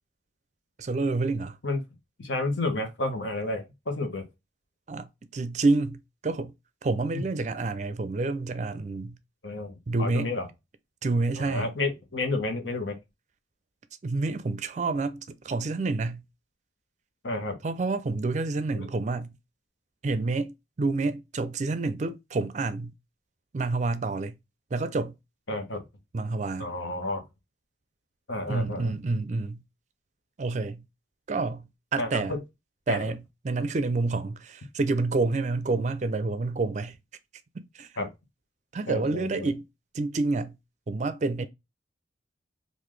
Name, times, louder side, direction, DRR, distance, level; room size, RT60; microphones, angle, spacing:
voice 1, 0.8-1.6 4.9-5.1 5.3-6.5 6.8-9.2 9.9-10.3 11.0-11.7 14.0-16.2 17.6-19.3 20.0-22.9 23.5-24.4 24.7-25.1 26.1-26.7 28.5-29.6 30.4-30.8 31.3-32.4 32.9-37.0 37.5-37.9 38.7-39.6 39.9-40.6 40.9-41.5, right 3 dB, 40° right, 0.4 m, -28 dB
voice 2, 2.2-4.2 9.4-9.7 10.0-10.5 11.4-13.0 17.2-17.6 18.8-18.9 25.5-25.8 26.6-27.2 28.3-28.9 32.0-32.4 32.9-33.1 38.0-38.1 38.9-39.5, left 2 dB, 85° left, 1.0 m, -31 dB
3.9 x 2.6 x 3.1 m
head